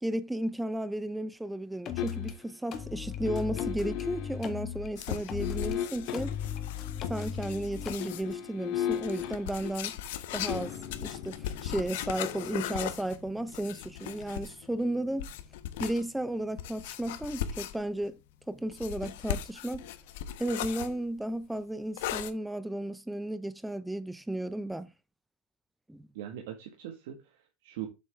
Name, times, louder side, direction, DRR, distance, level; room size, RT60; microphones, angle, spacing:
voice 1, 0.0-6.4 7.1-9.9 10.3-10.7 11.0-15.3 15.8-18.2 18.5-19.9 20.4-24.9 25.9-26.1, right 1 dB, 5° right, 0.5 m, -34 dB
sound 1, 1.8-2.3 2.7-5.8 6.1-7.9, left 8 dB, 35° left, 1.5 m, -37 dB
sound 2, 2.0-2.5 3.2-4.4 5.4-6.6 7.8-18.8 19.1-19.2, left 10 dB, 55° left, 1.4 m, -40 dB
sound 3, 5.0-8.3 8.9-14.7 15.2-16.0 16.6-18.0 18.7-20.9 22.0-22.3, left 11 dB, 75° left, 1.0 m, -38 dB
voice 2, 26.1-27.9, right 11 dB, 75° right, 1.7 m, -41 dB
7.4 x 7.0 x 3.5 m
supercardioid pair, 135°, 0 cm